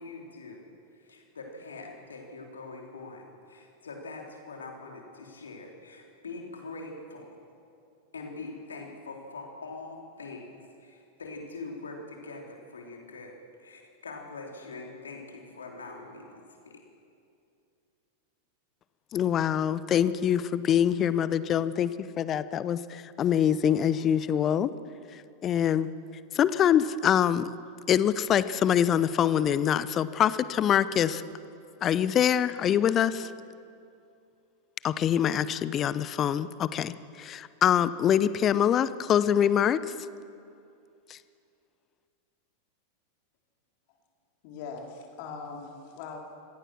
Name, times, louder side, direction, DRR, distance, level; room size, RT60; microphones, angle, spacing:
voice 1, 0.0-7.3 8.1-10.5 10.8-16.8, left 3 dB, 70° left, 1 dB, 3.6 m, -43 dB
voice 2, 19.1-24.7 25.4-25.9 26.3-27.5 27.9-31.2 31.8-33.3 34.8-39.8 41.1-41.2, left 9 dB, 30° left, 16 dB, 0.8 m, -24 dB
voice 3, 44.4-46.3, left 5 dB, 45° left, 1 dB, 3.5 m, -41 dB
26.0 x 17.0 x 6.3 m, 2.5 s
figure-of-eight pair, 90°, 0 cm